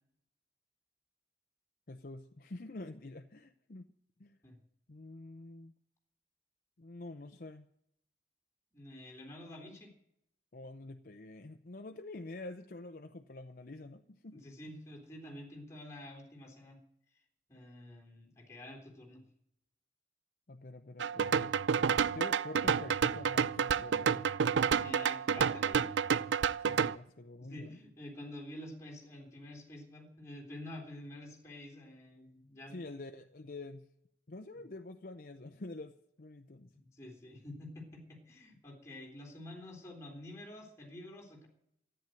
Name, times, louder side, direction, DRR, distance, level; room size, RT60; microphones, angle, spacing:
voice 1, 1.9-3.9 4.2-4.4 4.9-5.7 6.8-7.6 10.5-14.5 20.5-21.6 22.1-24.3 26.6-27.8 32.7-33.9 34.3-36.7, left 2 dB, 55° left, 7 dB, 0.7 m, -47 dB
voice 2, 8.7-9.9 14.3-16.8 17.5-19.2 24.8-25.9 27.4-32.8 34.5-34.6 36.9-41.5, left 1 dB, 15° left, 0 dB, 3.5 m, -48 dB
sound 1, 21.0-26.9, right 6 dB, 85° right, 0.5 m, -30 dB
14.0 x 9.1 x 9.2 m, 0.74 s
head